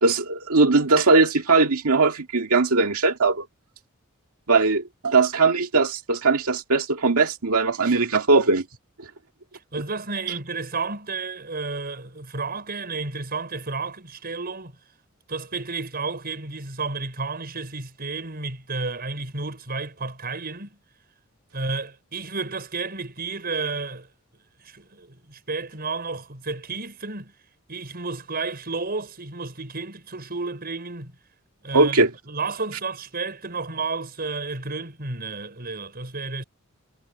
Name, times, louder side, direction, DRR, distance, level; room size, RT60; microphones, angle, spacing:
voice 1, 0.0-3.4 4.5-8.6 10.3-10.4 31.7-32.1, right 3 dB, 90° right, 2.0 m, -20 dB
voice 2, 9.7-14.7 15.3-20.8 21.5-24.1 24.6-27.3 27.7-31.1 31.6-32.0 32.3-36.4, right 3 dB, 45° right, 5.9 m, -31 dB
head